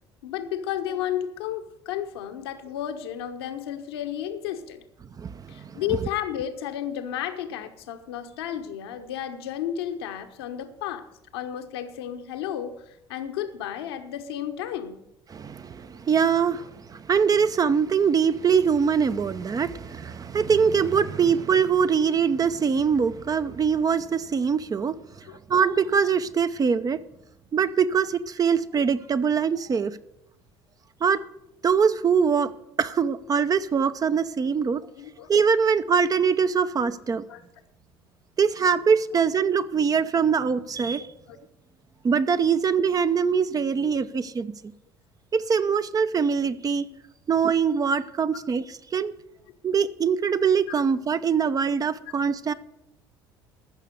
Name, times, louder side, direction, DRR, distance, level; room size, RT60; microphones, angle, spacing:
voice 1, 0.2-4.8 5.5-11.1 11.3-12.8 13.1-15.0 25.2-25.4 34.9-35.3 37.3-37.4 41.3-41.4 43.8-43.9 46.9-47.0, left 10 dB, 70° left, 1.1 m, -32 dB
voice 2, 5.2-6.0 15.3-25.0 25.5-27.0 27.5-30.0 31.0-31.2 31.6-32.5 32.8-34.8 35.3-37.2 38.4-41.1 42.0-44.5 45.3-46.8 47.3-48.6 48.9-49.1 49.6-52.5, right 6 dB, 25° right, 0.6 m, -23 dB
14.0 x 6.6 x 6.6 m
figure-of-eight pair, 60°, 13 cm